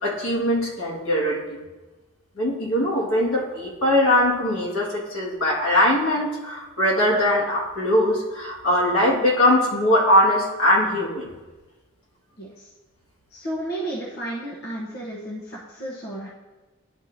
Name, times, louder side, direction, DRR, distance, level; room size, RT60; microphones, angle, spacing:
voice 1, 0.0-1.4 2.4-11.3, left 1 dB, 80° left, -4 dB, 1.8 m, -21 dB
voice 2, 12.4-12.7 13.3-16.3, right 1 dB, 45° left, -4 dB, 0.9 m, -32 dB
11.0 x 4.5 x 2.7 m, 1.2 s
head